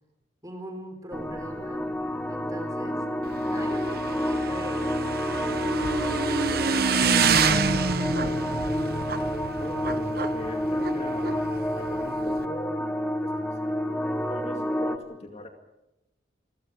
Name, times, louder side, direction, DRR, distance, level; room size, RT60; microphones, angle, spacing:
voice 1, 0.4-2.0 2.3-3.0 3.4-4.8 6.5-7.7, right 1 dB, 20° right, 5 dB, 4.3 m, -40 dB
sound 1, 1.1-15.0, equal, 5° left, 1.2 m, -29 dB
Motorcycle / Engine, 3.2-12.5, right 5 dB, 50° right, 1.2 m, -28 dB
voice 2, 8.2-9.2 9.6-11.4 11.7-13.8 14.3-15.5, left 1 dB, 35° left, 4 dB, 2.2 m, -41 dB
29.0 x 22.0 x 4.9 m, 0.94 s
head